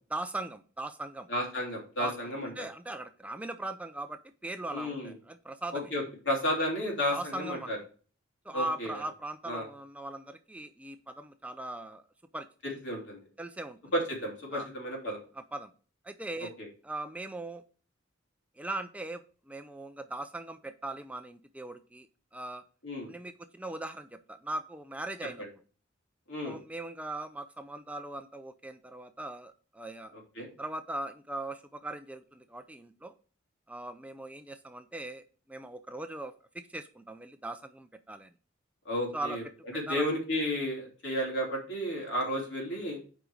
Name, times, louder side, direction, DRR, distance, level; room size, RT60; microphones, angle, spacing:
voice 1, 0.1-1.3 2.0-5.9 7.1-7.7 8.5-12.0 12.3-12.5 13.4-13.9 14.5-14.7 15.5-15.7 16.0-16.5 16.8-17.6 18.6-19.2 19.5-22.1 22.3-22.6 23.1-25.4 26.4-30.1 30.6-33.1 33.7-35.2 35.5-36.3 36.7-38.3 39.1-39.4 39.9-40.0, right 2 dB, 5° right, 8 dB, 0.4 m, -39 dB
voice 2, 1.3-2.5 4.7-5.1 5.7-7.8 8.5-9.0 9.5-9.7 12.6-13.2 13.9-15.2 16.6-16.7 22.8-23.1 26.3-26.6 30.3-30.5 38.8-39.4 39.7-43.0, equal, 65° left, -1 dB, 3.3 m, -32 dB
7.8 x 5.1 x 4.8 m, 0.39 s
head